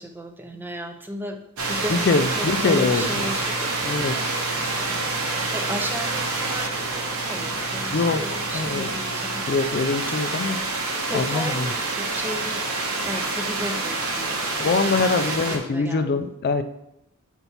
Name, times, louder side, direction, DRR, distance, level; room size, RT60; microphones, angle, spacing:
voice 1, 0.0-1.4 1.7-9.5 11.1-12.7 13.0-16.2, equal, 10° right, 5 dB, 0.5 m, -35 dB
sound 1, 1.6-15.6, right 3 dB, 70° right, 1.1 m, -27 dB
voice 2, 1.9-3.3 3.8-4.5 7.9-8.9 9.5-10.6 11.1-11.7 14.6-16.6, left 4 dB, 45° left, 9 dB, 0.4 m, -24 dB
4.5 x 4.1 x 5.8 m, 0.81 s
head